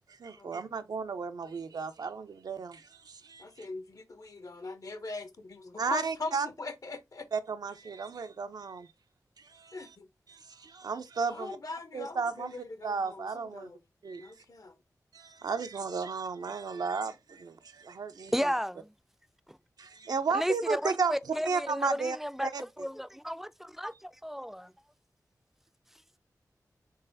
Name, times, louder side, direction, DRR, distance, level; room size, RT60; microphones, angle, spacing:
voice 1, 0.2-3.4 5.8-6.5 7.3-8.9 9.5-9.8 10.3-11.6 11.9-12.5 12.8-13.7 14.0-14.3 15.1-18.3 19.8-21.1 21.4-22.2 22.4-22.6, right 5 dB, 75° right, 0.5 m, -34 dB
voice 2, 3.4-7.3 9.7-10.1 11.3-13.8 14.2-14.8, left 3 dB, 60° left, 0.7 m, -41 dB
voice 3, 18.3-18.9 19.5-19.6 20.3-24.7, equal, 5° right, 0.3 m, -33 dB
3.9 x 3.2 x 2.6 m
cardioid pair, 45°, 7 cm